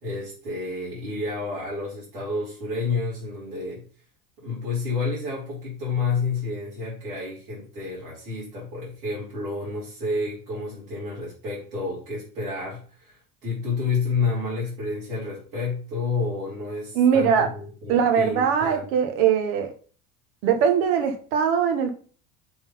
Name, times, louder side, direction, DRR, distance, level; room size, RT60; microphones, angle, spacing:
voice 1, 0.0-3.8 4.4-18.8, left 3 dB, 85° right, -8 dB, 3.3 m, -30 dB
voice 2, 16.9-17.5 17.9-19.7 20.4-21.9, right 7 dB, 70° right, 6 dB, 1.3 m, -21 dB
6.0 x 3.6 x 5.4 m, 0.41 s
hypercardioid pair, 80°, 44 cm